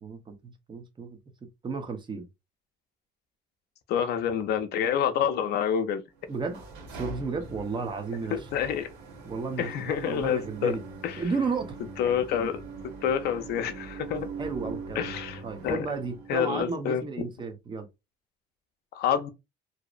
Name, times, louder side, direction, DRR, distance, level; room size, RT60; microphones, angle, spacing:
voice 1, 0.0-2.3 6.3-6.6 6.9-8.5 9.3-10.8 11.2-11.8 14.4-15.2 15.4-17.9, right 4 dB, 30° right, 0.7 m, -33 dB
voice 2, 3.9-6.0 8.3-8.9 9.6-10.8 11.0-11.2 12.0-12.6 13.0-14.3 15.0-15.9 16.3-17.0 18.9-19.3, left 8 dB, 75° left, 0.5 m, -27 dB
sound 1, 6.2-16.5, right 4 dB, 85° right, 0.9 m, -42 dB
2.7 x 2.0 x 2.4 m
cardioid pair, 110°, 17 cm